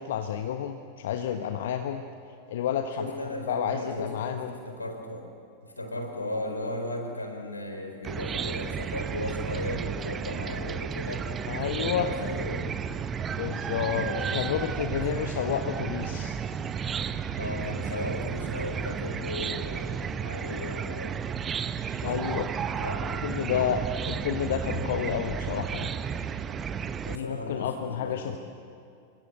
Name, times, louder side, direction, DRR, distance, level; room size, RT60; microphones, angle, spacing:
voice 1, 0.0-2.0 2.5-4.6 11.5-12.1 13.4-14.0 14.3-16.4 22.0-22.5 23.2-25.9 27.1-28.4, left 9 dB, 55° left, 7 dB, 1.2 m, -30 dB
voice 2, 3.0-5.3 5.6-12.8 13.9-14.4 14.9-15.0 17.4-21.2 22.0-22.4 22.8-23.2 27.0-28.4, left 1 dB, 80° left, 4 dB, 4.5 m, -36 dB
Chicken rooster / Cricket, 8.0-27.2, right 7 dB, 25° right, 1.1 m, -33 dB
28.0 x 24.0 x 8.0 m, 2.5 s
figure-of-eight pair, 90°, 0 cm